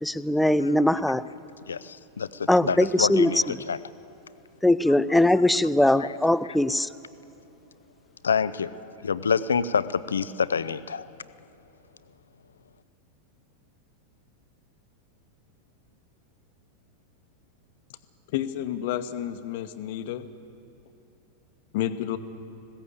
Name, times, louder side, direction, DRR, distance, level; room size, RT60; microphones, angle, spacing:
voice 1, 0.0-1.3 2.5-3.3 4.6-6.9, left 1 dB, 5° left, 16 dB, 0.5 m, -21 dB
voice 2, 1.7-3.8 6.0-6.1 8.2-8.7 9.0-11.1, left 6 dB, 70° left, 15 dB, 0.6 m, -27 dB
voice 3, 18.3-20.3 21.7-22.2, left 11 dB, 50° left, 11 dB, 1.0 m, -30 dB
20.0 x 16.5 x 8.2 m, 2.7 s
figure-of-eight pair, 90°, 0 cm